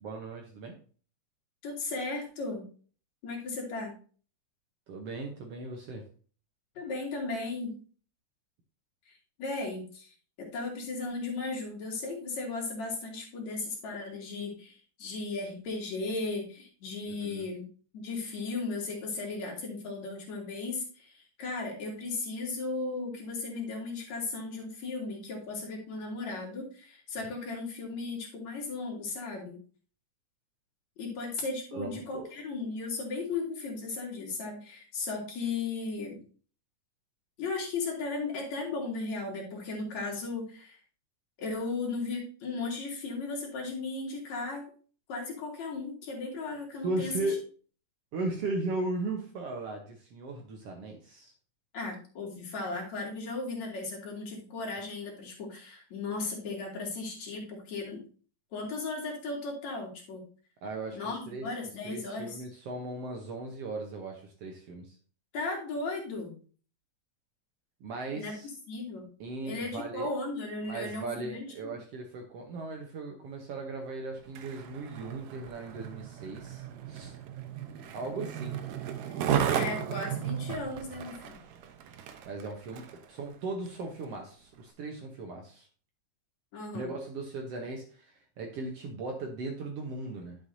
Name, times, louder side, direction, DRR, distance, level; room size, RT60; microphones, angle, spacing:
voice 1, 0.0-0.8 4.9-6.0 17.1-17.4 31.7-32.3 46.8-47.4 48.1-51.3 60.6-61.5 61.8-65.0 67.8-68.5 69.2-70.1 70.6-77.2 77.9-78.6 81.9-85.7 86.7-90.4, right 2 dB, 65° right, 2 dB, 1.6 m, -37 dB
voice 2, 1.6-2.6 3.2-4.0 6.7-7.8 9.1-9.2 9.4-17.7 17.9-29.6 31.0-36.2 37.4-40.8 41.4-44.7 45.1-47.3 51.7-58.0 58.5-60.2 60.9-62.4 65.3-66.3 68.1-68.3 68.7-69.1 69.4-71.8 79.5-81.3 86.5-86.9, left 3 dB, 60° left, -1 dB, 3.3 m, -36 dB
Skateboard, 74.2-83.1 83.7-83.8, right 9 dB, 85° right, 2.5 m, -35 dB
11.0 x 6.5 x 2.7 m, 0.40 s
omnidirectional pair, 3.7 m